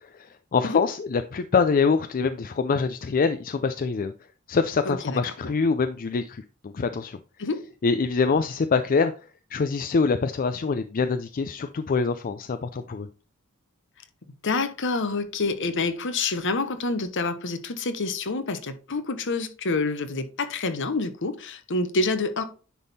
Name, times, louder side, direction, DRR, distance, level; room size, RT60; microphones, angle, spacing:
voice 1, 0.1-4.1 4.5-7.2 7.8-9.1 9.5-13.1, left 5 dB, 40° left, 0.4 m, -25 dB
voice 2, 4.8-5.5 7.4-7.7 14.4-22.4, left 3 dB, 60° left, 1.0 m, -27 dB
10.0 x 3.6 x 4.1 m
head